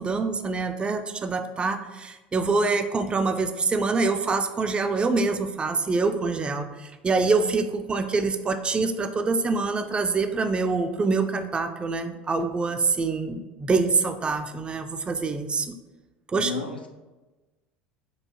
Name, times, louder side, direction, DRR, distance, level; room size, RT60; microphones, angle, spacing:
voice 1, 0.0-15.7 16.3-16.5, right 4 dB, 20° right, 8 dB, 0.3 m, -25 dB
voice 2, 16.3-16.9, left 5 dB, 90° left, 2 dB, 0.4 m, -33 dB
4.5 x 2.5 x 2.7 m, 1.2 s
figure-of-eight pair, 70°, 5 cm